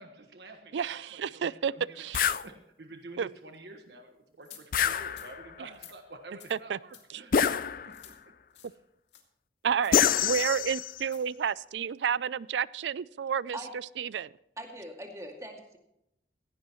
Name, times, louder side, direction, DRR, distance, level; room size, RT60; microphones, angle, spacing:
voice 1, 0.0-7.3 7.8-8.1, right 2 dB, 70° right, 5 dB, 1.4 m, -49 dB
voice 2, 0.7-2.3 3.2-3.3 6.5-6.8 7.1-7.2 9.6-13.6 14.0-14.3, right 7 dB, 85° right, 21 dB, 0.4 m, -31 dB
sound 1, 2.1-2.5 4.7-5.5 7.3-8.1 9.9-11.0, left 8 dB, 50° left, 0.4 m, -26 dB
sound 2, 4.4-4.6 5.1-5.3 5.7-6.0 6.4-6.5 6.9-7.0 7.4-7.5 7.9-8.2 8.5-8.7 9.1-9.2 9.8-10.0 10.4-10.6 11.0-11.2, left 10 dB, 85° left, 2.2 m, -51 dB
voice 3, 14.6-15.8, right 1 dB, 20° right, 2 dB, 2.3 m, -41 dB
16.5 x 15.5 x 3.1 m, 0.80 s
head